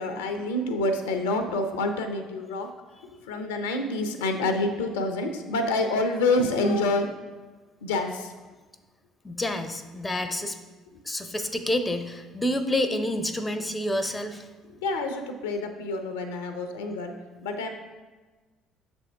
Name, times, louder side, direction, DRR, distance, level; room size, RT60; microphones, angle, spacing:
voice 1, 0.0-2.7 3.0-7.2 7.8-8.3 14.8-17.1 17.4-17.7, left 2 dB, 70° left, 7 dB, 0.5 m, -27 dB
voice 2, 9.2-10.6 11.0-14.5, left 1 dB, 15° left, 9 dB, 0.5 m, -28 dB
6.9 x 3.5 x 4.5 m, 1.3 s
figure-of-eight pair, 55°, 0 cm